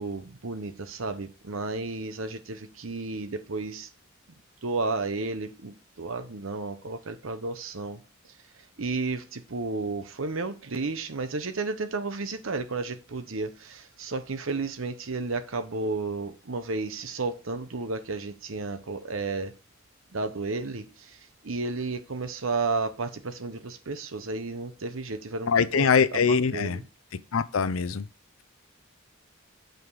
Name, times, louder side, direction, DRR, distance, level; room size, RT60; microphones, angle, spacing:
voice 1, 0.0-3.9 4.6-8.0 8.8-19.5 20.1-26.8, right 3 dB, 75° right, 0.9 m, -32 dB
voice 2, 25.5-26.8 27.3-28.1, left 6 dB, 85° left, 0.6 m, -23 dB
8.0 x 5.1 x 4.8 m
head